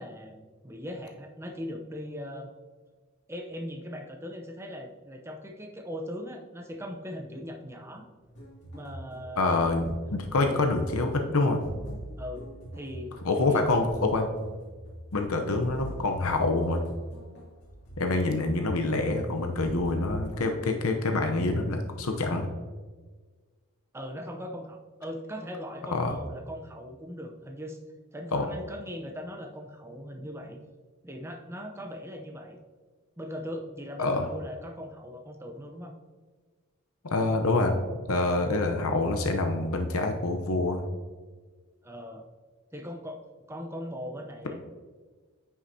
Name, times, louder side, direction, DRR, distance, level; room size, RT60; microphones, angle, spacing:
voice 1, 0.0-2.5 3.3-8.1 8.7-9.6 10.4-10.6 12.2-12.5 12.7-13.6 23.9-27.8 28.1-30.6 31.0-32.6 33.2-35.9 41.8-42.2 42.7-43.2 43.5-44.6, equal, 10° right, 3 dB, 0.7 m, -39 dB
sound 1, 8.2-20.6, right 1 dB, 50° left, 2.4 m, -43 dB
voice 2, 9.4-11.6 13.2-14.3 15.1-16.8 18.0-22.5 25.9-26.1 28.3-28.5 34.0-34.3 37.0-37.8 38.1-40.8, left 2 dB, 75° left, 4 dB, 0.7 m, -26 dB
9.6 x 6.2 x 2.7 m, 1.4 s
head